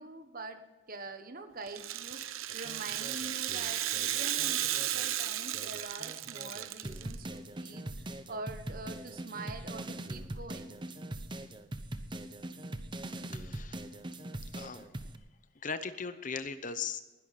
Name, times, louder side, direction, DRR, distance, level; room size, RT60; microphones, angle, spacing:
voice 1, 0.0-2.2 2.5-10.8, right 3 dB, 45° right, 7 dB, 1.3 m, -45 dB
Rattle (instrument), 1.7-7.1, right 12 dB, 85° right, 0.8 m, -34 dB
sound 1, 2.5-5.1 5.5-15.2, right 1 dB, 25° right, 0.8 m, -42 dB
voice 2, 13.3-13.8 14.5-14.8 15.6-17.0, left 5 dB, 40° left, 11 dB, 0.8 m, -38 dB
20.0 x 11.5 x 4.2 m, 1.1 s
head